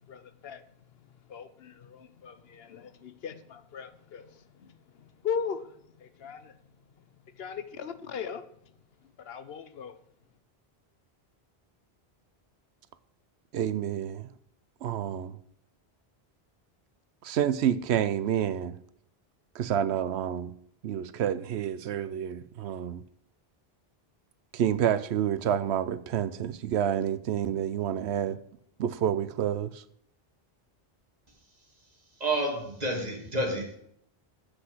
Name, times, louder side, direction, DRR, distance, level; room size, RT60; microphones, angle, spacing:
voice 1, 0.1-0.6 1.0-6.6 7.3-8.5 9.2-10.0, left 7 dB, 70° left, 1.0 m, -39 dB
voice 2, 13.5-14.3 14.8-15.4 17.2-18.8 19.5-20.5 20.8-23.0 24.5-28.4 28.8-29.8, right 9 dB, 90° right, 0.9 m, -29 dB
voice 3, 32.2-33.8, right 1 dB, 40° right, 2.3 m, -29 dB
8.0 x 6.2 x 7.6 m
omnidirectional pair, 1.1 m